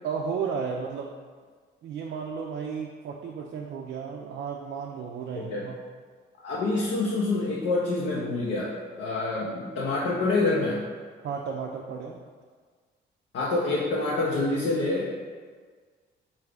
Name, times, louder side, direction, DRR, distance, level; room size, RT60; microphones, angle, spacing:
voice 1, 0.0-1.1 1.8-5.8 11.2-12.2, right 6 dB, 60° right, 0 dB, 0.4 m, -33 dB
voice 2, 6.4-10.8 13.3-15.1, left 2 dB, 70° left, -6 dB, 0.7 m, -27 dB
3.7 x 2.6 x 3.4 m, 1.6 s
cardioid pair, 90°, 20 cm